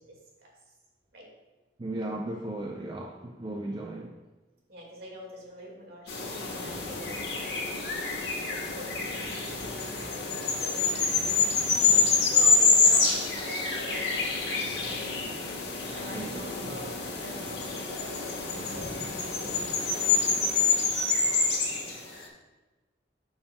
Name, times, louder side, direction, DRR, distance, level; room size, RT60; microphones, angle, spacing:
voice 1, 1.8-4.1 16.1-16.8, right 1 dB, 25° right, 0.4 m, -36 dB
voice 2, 4.7-6.2 6.5-7.6 8.5-9.0 9.7-10.9 11.5-11.8 12.3-15.1 15.9-16.9 17.2-18.3 18.7-18.9 19.2-19.8 20.5-20.7 21.3-22.0, equal, 60° right, 1.9 m, -45 dB
sound 1, 6.1-22.2, left 4 dB, 70° left, 1.3 m, -27 dB
11.0 x 5.6 x 2.2 m
head